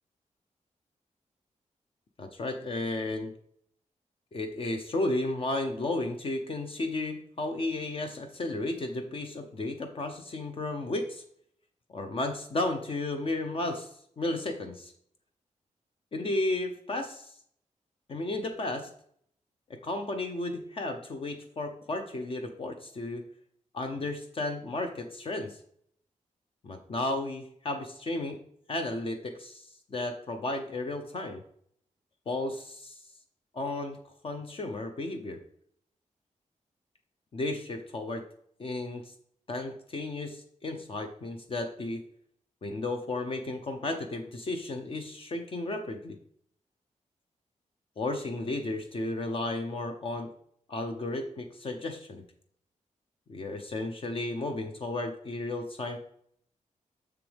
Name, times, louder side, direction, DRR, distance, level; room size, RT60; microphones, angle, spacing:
voice 1, 2.2-3.3 4.3-11.2 11.9-14.9 16.1-17.3 18.1-18.9 19.7-23.2 23.7-25.6 26.6-28.4 28.7-31.4 32.3-33.0 33.5-34.0 34.2-35.4 37.3-38.2 38.6-39.1 39.5-42.0 42.6-46.2 48.0-50.3 50.7-52.2 53.3-56.0, left 2 dB, 45° left, 5 dB, 0.7 m, -33 dB
7.0 x 6.6 x 3.4 m, 0.66 s
wide cardioid pair, 180°, 13 cm